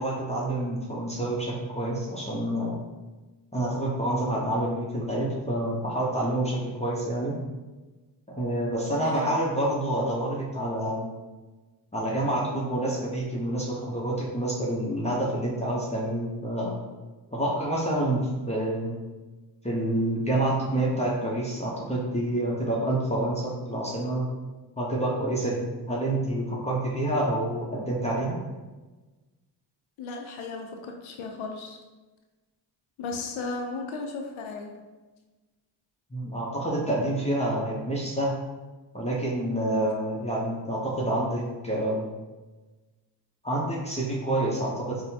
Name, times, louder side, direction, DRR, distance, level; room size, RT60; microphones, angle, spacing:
voice 1, 0.0-2.8 3.5-7.3 8.3-11.1 11.9-16.8 17.3-19.0 19.6-24.3 24.8-28.4 36.1-38.4 38.9-42.1 43.4-45.0, right 1 dB, 15° left, -4 dB, 0.7 m, -28 dB
voice 2, 8.9-9.3 30.0-31.8 33.0-34.7, left 3 dB, 80° left, 3 dB, 0.6 m, -35 dB
4.1 x 2.2 x 2.8 m, 1.2 s
cardioid pair, 60°, 48 cm